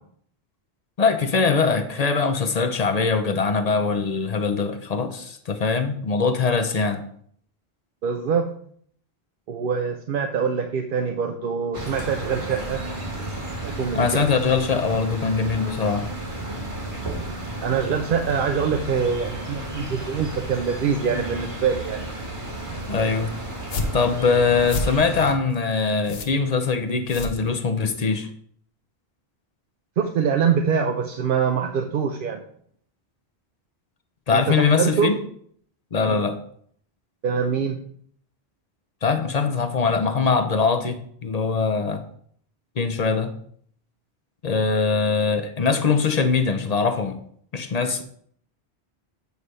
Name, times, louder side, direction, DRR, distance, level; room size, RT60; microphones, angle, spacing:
voice 1, 1.0-7.0 13.9-16.1 22.9-23.3 23.9-28.3 34.3-35.2 35.9-36.4 39.0-42.0 42.8-43.3 44.4-47.2 47.5-48.0, left 5 dB, 45° left, 9 dB, 0.6 m, -22 dB
voice 2, 8.0-8.5 9.5-12.8 13.6-14.3 17.6-22.1 30.0-32.4 34.3-35.1 36.1-36.2 37.2-37.8, right 6 dB, 60° right, 4 dB, 0.7 m, -24 dB
sound 1, 11.7-25.3, right 1 dB, 30° right, 1.4 m, -33 dB
sound 2, 23.5-28.0, left 2 dB, 70° left, 1.0 m, -32 dB
8.1 x 3.3 x 5.3 m, 0.62 s
omnidirectional pair, 1.1 m